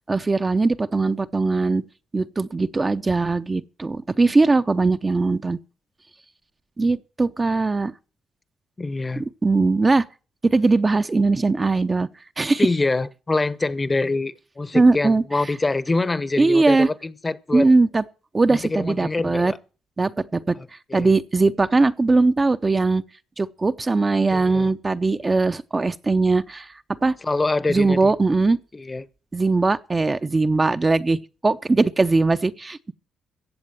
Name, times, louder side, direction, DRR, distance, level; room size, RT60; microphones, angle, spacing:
voice 1, 0.1-1.8 2.1-5.6 6.8-7.9 9.2-10.0 10.4-12.1 12.4-12.7 14.7-15.2 16.4-16.9 17.5-18.0 18.3-19.5 20.0-20.6 20.9-23.0 23.4-26.7 27.0-27.1 27.7-28.6 29.3-31.2 31.4-32.9, right 3 dB, 25° right, 0.6 m, -20 dB
voice 2, 8.8-9.2 12.6-17.7 18.5-19.6 20.6-21.1 24.3-24.7 27.2-28.1 28.7-29.1, left 3 dB, 20° left, 0.9 m, -25 dB
15.0 x 7.9 x 7.7 m
cardioid pair, 90°, 0 cm